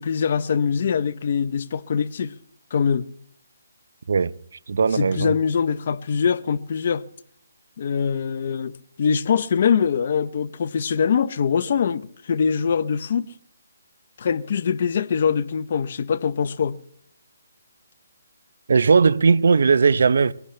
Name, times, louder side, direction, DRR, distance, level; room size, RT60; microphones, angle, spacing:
voice 1, 0.0-2.4 2.7-3.1 4.9-7.0 7.8-8.7 9.0-13.3 14.2-16.8, left 6 dB, 45° left, 0.8 m, -23 dB
voice 2, 4.7-5.3 18.7-20.3, right 5 dB, 65° right, 0.8 m, -18 dB
23.0 x 17.0 x 3.3 m
hypercardioid pair, 165°, 0 cm